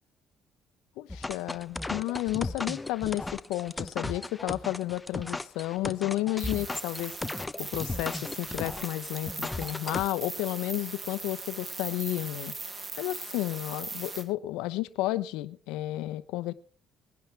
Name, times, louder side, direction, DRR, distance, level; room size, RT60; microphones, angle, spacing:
voice 1, 1.0-7.1 7.6-16.5, left 16 dB, 90° left, 0.8 m, -32 dB
sound 1, 1.1-10.1, left 2 dB, 15° left, 0.8 m, -36 dB
sound 2, 6.4-14.2, right 3 dB, 25° right, 2.6 m, -40 dB
20.5 x 10.5 x 3.4 m
supercardioid pair, 80°, 0 cm